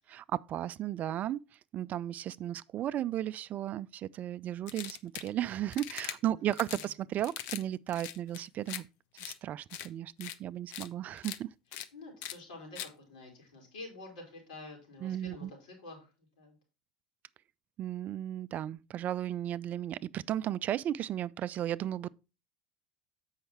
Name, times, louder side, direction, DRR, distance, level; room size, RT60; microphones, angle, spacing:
voice 1, 0.1-1.4 1.7-8.9 9.2-11.5 15.0-15.5 17.8-22.1, right 12 dB, 40° right, 0.3 m, -35 dB
sound 1, 4.7-5.3 5.7-6.2 6.5-6.9 7.2-7.6 7.9-8.8 9.2-9.4 9.7-9.9 10.2-10.4 10.7-10.9 11.2-11.4 11.7-11.9 12.2-12.4 12.8-12.9, left 12 dB, 55° left, 0.7 m, -41 dB
voice 2, 6.2-6.9 11.9-16.6, left 2 dB, 75° left, 4.0 m, -49 dB
7.8 x 5.6 x 4.3 m
figure-of-eight pair, 70°, 4 cm